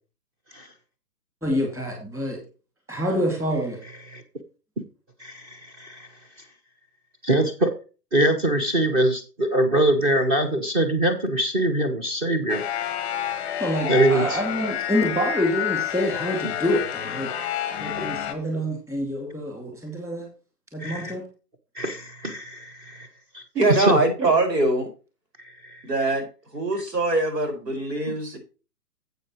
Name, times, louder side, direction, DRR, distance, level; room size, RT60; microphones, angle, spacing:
voice 1, 1.4-2.4 2.9-3.8 13.6-17.3 17.8-20.3 20.7-21.2, equal, 5° right, 1 dB, 2.3 m, -27 dB
voice 2, 5.2-6.1 7.2-7.7 8.1-12.6 13.9-14.4 17.8-18.1 20.8-21.2 21.7-23.1 23.3-23.4 23.8-24.0 25.6-25.8, right 1 dB, 20° right, 7 dB, 1.1 m, -23 dB
sound 1, 12.5-18.3, left 10 dB, 10° left, 0.8 m, -29 dB
voice 3, 23.6-24.9 25.8-26.3 26.5-28.4, right 2 dB, 80° right, 4 dB, 5.3 m, -22 dB
12.0 x 8.0 x 3.0 m, 0.34 s
hypercardioid pair, 155°, 48 cm